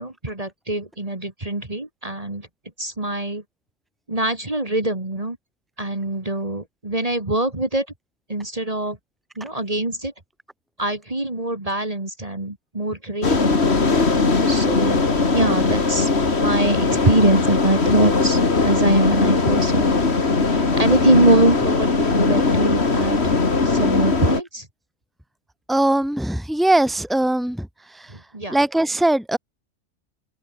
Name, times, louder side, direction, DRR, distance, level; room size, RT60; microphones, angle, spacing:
voice 1, 0.0-2.5 2.8-3.4 4.1-5.4 5.8-7.9 8.3-9.0 9.4-10.1 10.8-13.6 14.5-15.0 15.3-16.1 16.4-19.9 20.5-23.4 23.6-24.7 28.1-28.6, right 1 dB, 30° right, 2.7 m, -23 dB
sound 1, 13.2-24.4, left 4 dB, 60° left, 2.6 m, -19 dB
voice 2, 25.7-27.7 28.5-29.4, right 1 dB, ahead, 2.6 m, -20 dB
omnidirectional pair, 1.2 m